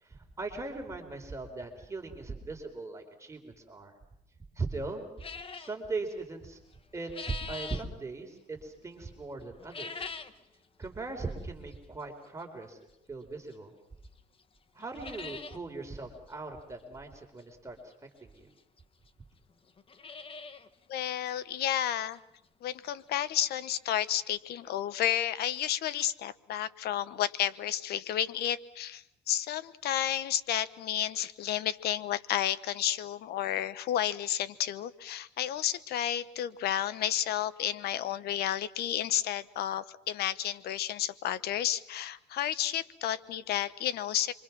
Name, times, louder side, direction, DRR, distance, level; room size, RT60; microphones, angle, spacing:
voice 1, 0.0-3.9 4.6-5.0 5.5-6.6 6.9-10.1 10.8-12.8 13.1-13.7 14.7-17.9 18.2-18.5, right 3 dB, 15° right, 3 dB, 4.3 m, -39 dB
sound 1, 5.2-5.8 6.7-7.9 9.6-10.4 10.8-10.9 11.7-11.8 13.5-13.6 14.0-14.1 14.4-14.5 14.8-15.6 15.9-16.0 16.3-16.4 17.9-18.0 18.8-18.9 19.1-19.2 19.7-20.7 21.0-21.1 21.6-21.7 22.1-22.2 24.0-24.1 24.2-24.3 24.8-24.9, left 4 dB, 35° left, 1.4 m, -42 dB
voice 2, 20.9-22.2 22.6-44.3, left 11 dB, 70° left, 15 dB, 1.1 m, -31 dB
27.5 x 24.5 x 6.1 m, 0.81 s
cardioid pair, 110°, 17 cm